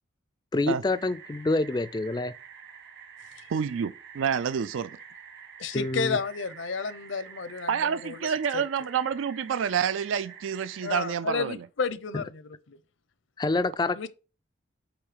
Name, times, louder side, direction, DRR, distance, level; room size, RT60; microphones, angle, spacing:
voice 1, 0.5-2.3 5.7-6.2 12.1-12.2 13.4-14.1, left 2 dB, 20° left, 0.3 m, -27 dB
sound 1, 0.9-11.1, right 7 dB, 60° right, 1.5 m, -48 dB
voice 2, 3.5-4.9 7.7-11.5, right 7 dB, 85° right, 0.4 m, -28 dB
voice 3, 5.6-8.3 8.5-8.6 10.8-12.8 14.0-14.1, left 5 dB, 75° left, 0.6 m, -32 dB
8.3 x 3.1 x 4.9 m
head